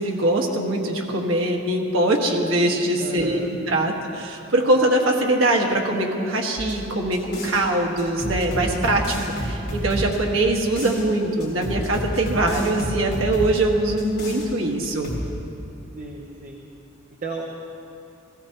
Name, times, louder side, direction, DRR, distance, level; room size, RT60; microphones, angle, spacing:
voice 1, 0.0-3.4 3.7-15.1, right 1 dB, 80° right, 0 dB, 1.5 m, -22 dB
voice 2, 3.0-3.8 15.9-16.6 17.2-17.6, right 3 dB, 40° right, -1 dB, 0.9 m, -33 dB
sound 1, 6.6-7.6 8.0-11.0 11.4-13.6 14.0-14.5 14.8-15.3, equal, 50° left, 3.3 m, -30 dB
16.0 x 15.5 x 2.9 m, 2.8 s
head